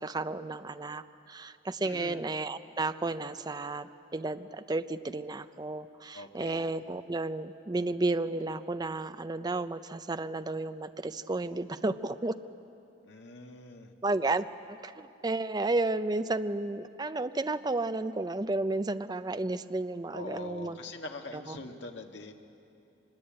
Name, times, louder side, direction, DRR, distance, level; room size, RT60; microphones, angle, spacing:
voice 1, 0.0-12.4 14.0-20.8 21.3-21.6, right 2 dB, 25° right, 11 dB, 0.6 m, -32 dB
voice 2, 1.8-2.2 6.1-6.7 13.0-13.9 20.1-22.3, left 2 dB, 75° left, 4 dB, 1.8 m, -43 dB
24.5 x 21.5 x 8.7 m, 2.7 s
head